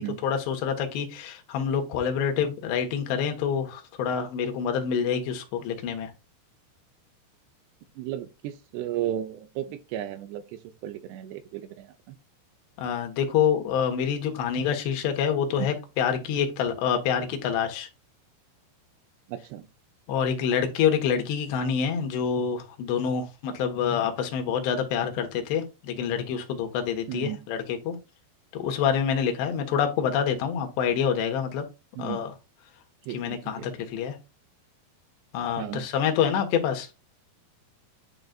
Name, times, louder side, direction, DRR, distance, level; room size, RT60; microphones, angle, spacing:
voice 1, 0.0-6.1 12.8-17.9 20.1-28.0 28.5-31.7 32.0-32.3 33.1-34.2 35.3-36.9, left 7 dB, 75° left, 3.4 m, -27 dB
voice 2, 8.0-12.2 19.3-19.7 27.1-27.4 32.0-32.2 33.1-33.7 35.6-35.9, right 12 dB, 80° right, 2.6 m, -35 dB
10.5 x 3.9 x 2.3 m
omnidirectional pair, 5.0 m